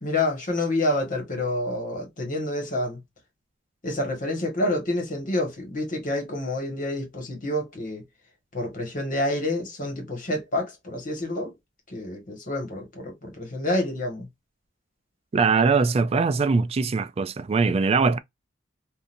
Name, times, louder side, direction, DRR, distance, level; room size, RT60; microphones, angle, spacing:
voice 1, 0.0-3.0 3.8-8.0 8.5-11.5 11.9-14.3, left 1 dB, 45° left, 1.6 m, -28 dB
voice 2, 15.3-18.2, right 4 dB, 30° right, 0.3 m, -21 dB
3.8 x 2.6 x 2.6 m
head